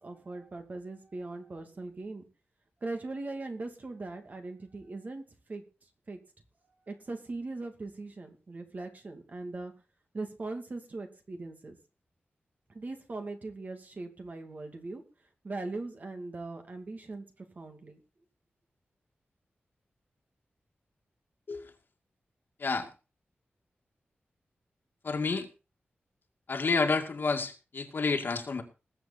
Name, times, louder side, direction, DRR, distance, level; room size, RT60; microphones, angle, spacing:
voice 1, 0.0-2.2 2.8-5.2 5.5-5.6 6.1-6.2 6.9-9.7 10.1-11.8 12.7-15.0 15.4-17.2 17.6-18.0, right 3 dB, 45° right, 5 dB, 2.5 m, -40 dB
voice 2, 25.0-25.5 26.5-28.6, left 4 dB, 60° left, 5 dB, 2.2 m, -29 dB
20.0 x 7.9 x 4.2 m, 0.33 s
wide cardioid pair, 135°, 4 cm